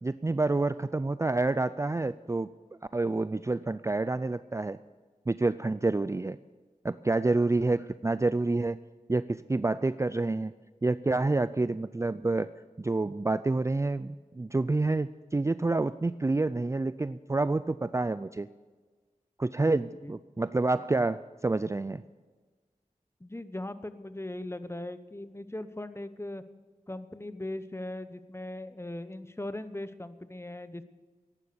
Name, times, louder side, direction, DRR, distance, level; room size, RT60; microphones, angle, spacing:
voice 1, 0.0-2.5 2.9-4.8 5.3-6.4 6.8-8.8 9.1-10.5 10.8-12.5 12.8-18.5 19.4-22.0, right 2 dB, 20° right, 15 dB, 0.4 m, -28 dB
voice 2, 19.8-20.1 23.2-26.4 26.9-30.8, left 1 dB, 20° left, 12 dB, 0.9 m, -39 dB
14.5 x 11.0 x 6.9 m, 1.4 s
cardioid pair, 45°, 14 cm